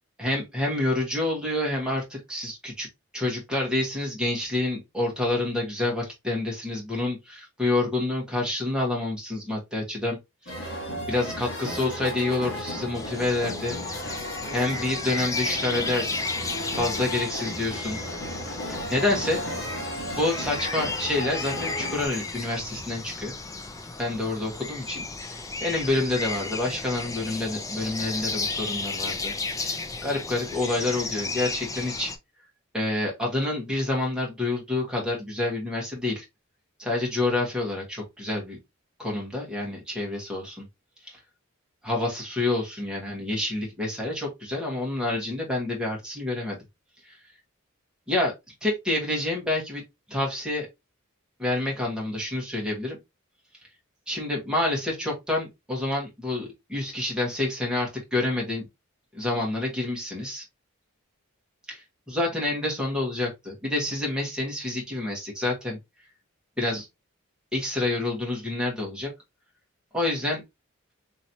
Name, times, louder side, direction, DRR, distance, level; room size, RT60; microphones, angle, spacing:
voice 1, 0.2-2.9 3.1-10.2 10.4-10.8 11.1-13.8 14.5-16.4 16.6-18.0 18.7-19.4 20.2-23.3 24.0-32.1 32.7-36.2 36.8-38.6 39.0-40.7 41.1-41.2 41.8-46.6 47.0-47.2 48.1-48.3 48.6-49.8 50.1-50.7 51.4-53.0 54.1-58.7 59.1-60.4 61.7-65.8 66.6-66.9 67.5-69.1 69.9-70.4, left 2 dB, 5° right, 1.3 m, -28 dB
sound 1, 10.5-22.1, left 1 dB, 55° left, 1.5 m, -35 dB
sound 2, 12.9-32.2, left 3 dB, 15° left, 0.4 m, -34 dB
4.0 x 3.0 x 2.7 m
head